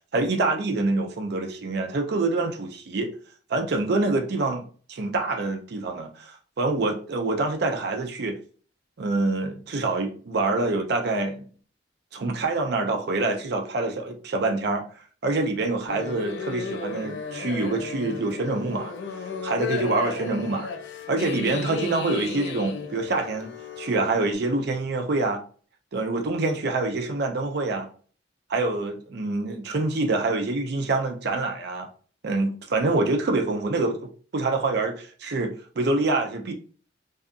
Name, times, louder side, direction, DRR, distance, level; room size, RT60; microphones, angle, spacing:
voice 1, 0.1-3.1 3.5-8.4 9.0-11.5 12.1-14.8 15.2-18.9 19.4-20.7 21.1-23.5 23.8-25.4 25.9-27.9 28.5-31.9 32.2-36.5, right 2 dB, 60° right, 0.5 m, -26 dB
sound 1, 15.9-24.3, left 5 dB, 70° left, 0.4 m, -34 dB
2.7 x 2.4 x 2.4 m
head